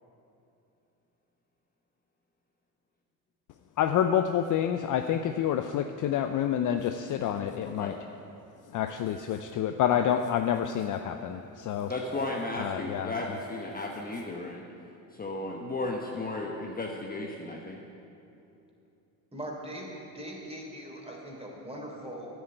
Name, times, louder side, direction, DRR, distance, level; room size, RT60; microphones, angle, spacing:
voice 1, 3.8-7.9 8.7-11.9 12.6-13.1, left 9 dB, 40° left, 8 dB, 0.6 m, -28 dB
voice 2, 11.9-14.6 15.1-17.8, left 2 dB, 20° left, -1 dB, 1.2 m, -34 dB
voice 3, 19.3-22.3, right 1 dB, 10° right, -1 dB, 3.4 m, -41 dB
10.0 x 8.0 x 8.9 m, 2.8 s
hypercardioid pair, 80°, 48 cm